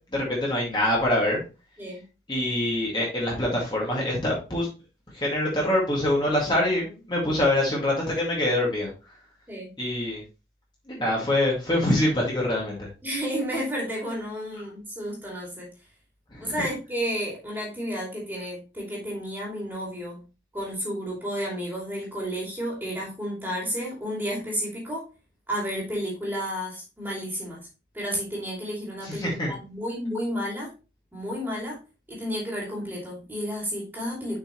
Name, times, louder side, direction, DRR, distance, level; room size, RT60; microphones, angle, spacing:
voice 1, 0.1-1.4 2.3-4.7 5.1-8.9 9.8-10.2 10.9-12.9 16.3-16.5 29.0-29.5, left 1 dB, 25° left, -4 dB, 2.1 m, -25 dB
voice 2, 13.0-15.7 16.4-20.2 20.5-25.1 25.5-27.6 27.9-30.7 31.1-31.8 32.1-34.4, equal, 10° right, -3 dB, 2.6 m, -31 dB
6.8 x 5.6 x 3.0 m, 0.31 s
head